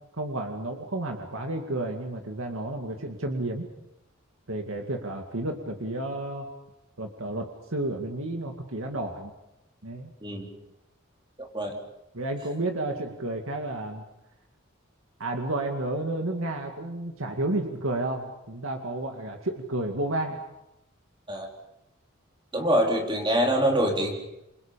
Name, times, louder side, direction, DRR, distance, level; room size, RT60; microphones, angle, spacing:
voice 1, 0.2-3.7 4.5-6.5 7.0-9.3 9.8-10.1 12.1-14.0 15.2-20.4, right 2 dB, 75° right, 3 dB, 2.3 m, -31 dB
voice 2, 11.4-11.7 21.3-21.5 22.5-24.1, equal, 25° right, 1 dB, 4.2 m, -24 dB
28.5 x 24.5 x 5.3 m, 0.89 s
head